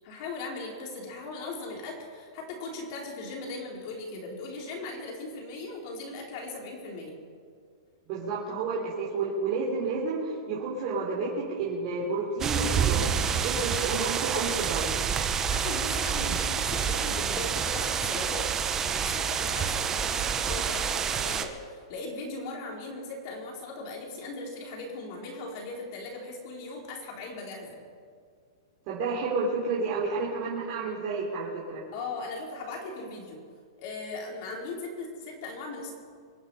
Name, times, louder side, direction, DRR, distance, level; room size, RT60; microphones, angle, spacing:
voice 1, 0.0-7.1 15.2-18.5 18.8-27.8 31.9-33.4 33.8-35.9, left 3 dB, 45° left, -1 dB, 4.4 m, -38 dB
voice 2, 8.1-13.0 13.4-14.9 28.9-31.8, right 4 dB, 40° right, -6 dB, 3.7 m, -30 dB
sound 1, 12.4-21.5, right 7 dB, 20° right, 0.9 m, -28 dB
25.5 x 9.1 x 5.7 m, 2.1 s
hypercardioid pair, 150°, 3 cm